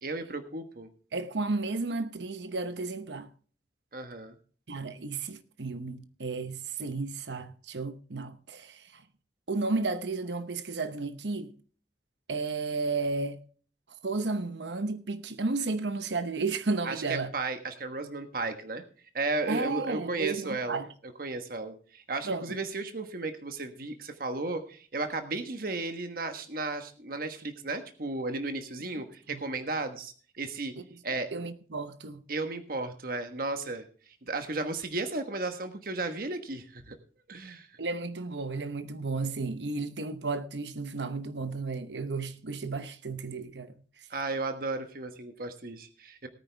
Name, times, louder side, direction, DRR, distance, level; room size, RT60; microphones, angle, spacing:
voice 1, 0.0-0.9 3.9-4.4 16.8-18.8 19.1-20.8 21.2-30.7 31.0-31.3 32.3-33.9 34.3-37.0 37.3-37.7 44.1-46.3, right 3 dB, 55° right, 1.3 m, -34 dB
voice 2, 1.1-3.3 4.7-9.0 9.5-11.5 12.3-13.4 14.0-17.3 19.5-20.9 22.3-22.5 29.3-29.4 31.3-32.2 37.8-43.7, right 3 dB, 80° right, 0.9 m, -33 dB
18.5 x 9.2 x 3.4 m
head